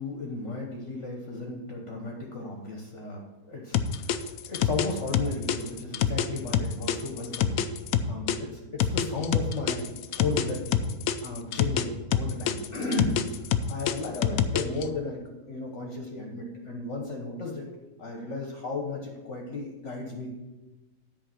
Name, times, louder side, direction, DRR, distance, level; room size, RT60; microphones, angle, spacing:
voice 1, 0.0-3.8 4.1-7.6 8.1-9.9 10.2-10.6 11.2-13.4 13.7-15.2 15.5-17.6 18.0-20.3, left 3 dB, 50° left, 1 dB, 1.4 m, -34 dB
sound 1, 3.7-8.4 8.8-11.8 12.1-14.8, left 9 dB, 70° left, 1.0 m, -26 dB
10.0 x 4.7 x 7.6 m, 1.1 s
omnidirectional pair, 1.7 m